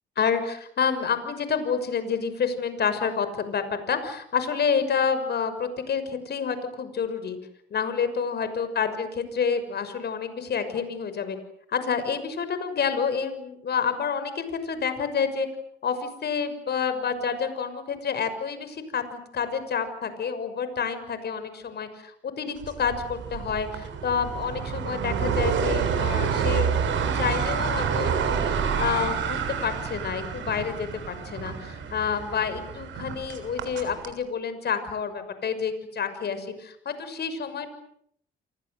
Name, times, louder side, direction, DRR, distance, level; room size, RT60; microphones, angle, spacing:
voice 1, 0.2-7.4 7.7-11.4 11.7-15.5 15.8-37.7, left 6 dB, 55° left, 11 dB, 6.2 m, -28 dB
sound 1, 22.6-34.1, right 7 dB, 75° right, 7.1 m, -28 dB
29.0 x 24.5 x 8.0 m, 0.71 s
cardioid pair, 90°, 20 cm